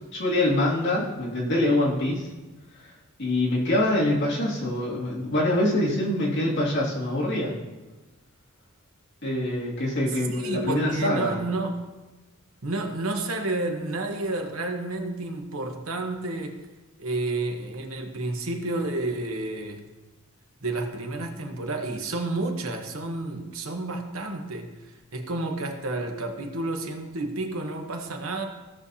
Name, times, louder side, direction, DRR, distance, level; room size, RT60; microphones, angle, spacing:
voice 1, 0.1-2.3 3.2-7.6 9.2-11.4, left 1 dB, 55° left, -5 dB, 2.5 m, -24 dB
voice 2, 10.3-11.8 12.6-16.6 17.0-19.8 20.6-24.7 25.1-28.5, right 2 dB, 70° right, 4 dB, 1.1 m, -30 dB
16.5 x 6.6 x 2.8 m, 1.2 s
head